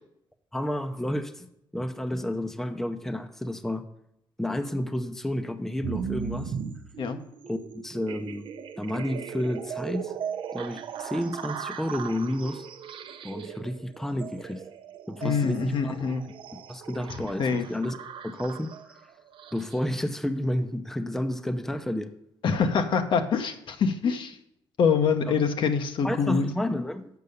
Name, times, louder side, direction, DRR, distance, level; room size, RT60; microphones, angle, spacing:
voice 1, 0.5-1.5 1.7-3.9 4.4-6.5 7.5-8.5 8.8-10.1 10.5-12.6 13.2-14.6 15.1-16.1 16.5-18.0 18.2-19.0 19.5-22.1 26.0-27.1, left 1 dB, 5° left, 0.6 m, -31 dB
sound 1, 5.8-19.9, right 7 dB, 65° right, 0.6 m, -38 dB
voice 2, 15.2-16.2 17.4-17.7 22.4-24.4 24.8-26.5, left 6 dB, 65° left, 0.9 m, -25 dB
6.9 x 5.4 x 6.7 m
cardioid pair, 90°, 9 cm